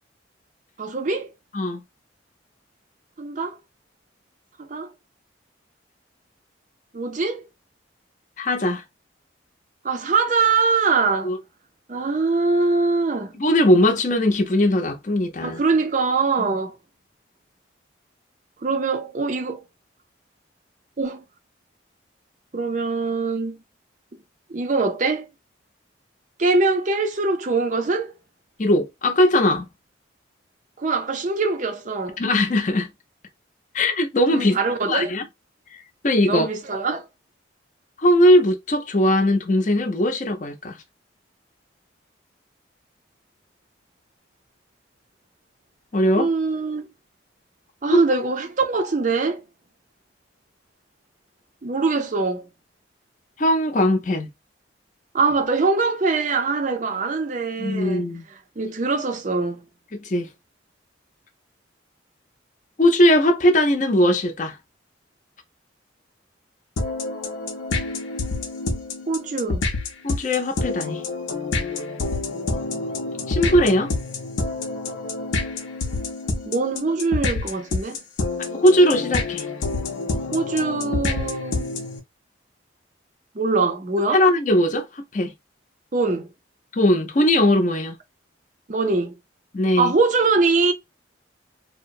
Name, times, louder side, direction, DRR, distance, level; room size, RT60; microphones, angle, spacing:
voice 1, 0.8-1.3 3.2-3.6 4.6-4.9 6.9-7.4 9.8-11.3 11.9-13.3 15.4-16.8 18.6-19.6 21.0-21.2 22.5-23.6 24.5-25.3 26.4-28.1 30.8-32.2 34.3-35.1 36.2-37.0 46.2-46.9 47.8-49.4 51.6-52.5 55.1-58.0 58.6-59.6 69.1-69.7 76.5-78.0 80.3-81.7 83.3-84.2 85.9-86.3 88.7-89.2 89.8-90.7, right 4 dB, 40° right, 0.5 m, -23 dB
voice 2, 8.4-8.8 11.2-11.4 13.3-15.6 28.6-29.7 32.2-32.9 33.7-34.6 34.9-35.3 35.7-36.5 38.0-40.8 45.9-46.3 47.9-48.0 53.4-54.3 57.6-58.2 59.9-60.3 62.8-64.6 70.0-71.0 73.3-73.9 78.5-79.4 84.1-85.3 86.7-88.0 89.5-89.9, left 1 dB, 40° left, 0.5 m, -19 dB
sound 1, 66.8-82.0, left 3 dB, 85° left, 0.6 m, -27 dB
2.8 x 2.0 x 2.5 m
head